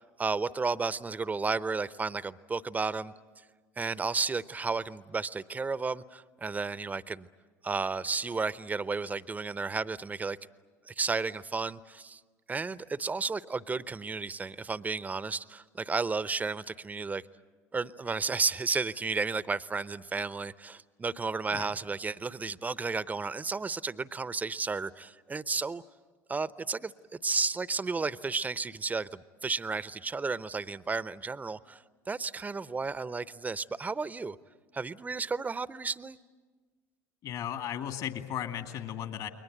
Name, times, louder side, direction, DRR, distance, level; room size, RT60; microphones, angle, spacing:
voice 1, 0.0-3.1 3.8-7.3 7.6-10.4 10.9-12.2 12.5-17.2 17.7-25.8 26.3-34.4 34.7-36.2, right 4 dB, 20° right, 17 dB, 0.8 m, -33 dB
voice 2, 37.2-39.3, left 10 dB, 55° left, 7 dB, 2.4 m, -36 dB
30.0 x 22.0 x 8.1 m, 1.4 s
hypercardioid pair, 65°, 8 cm